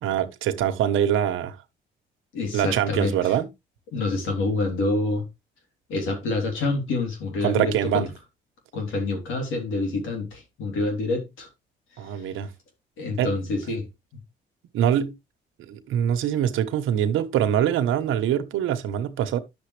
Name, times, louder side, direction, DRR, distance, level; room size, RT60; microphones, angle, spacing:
voice 1, 0.0-1.6 2.5-3.5 7.4-8.1 12.0-12.5 13.2-13.3 14.7-15.1 15.7-19.4, right 10 dB, 85° right, 1.1 m, -24 dB
voice 2, 2.3-3.3 3.9-5.3 5.9-8.0 8.7-11.5 13.0-13.9, left 2 dB, 80° left, 3.4 m, -27 dB
9.5 x 6.8 x 3.2 m
cardioid pair, 90°, 20 cm